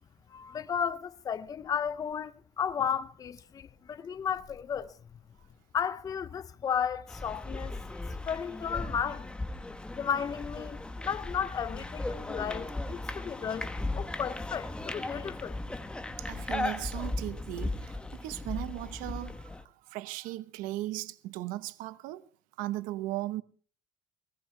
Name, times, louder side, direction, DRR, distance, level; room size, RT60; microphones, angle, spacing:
voice 1, 0.3-4.9 5.7-7.8 8.2-9.3 9.9-15.6, left 7 dB, 25° left, 0.6 m, -34 dB
sound 1, 7.1-19.6, left 2 dB, 5° left, 1.0 m, -37 dB
voice 2, 16.2-22.3 22.6-23.4, right 16 dB, 75° right, 0.9 m, -37 dB
19.0 x 18.0 x 3.3 m
cardioid pair, 150°, 14 cm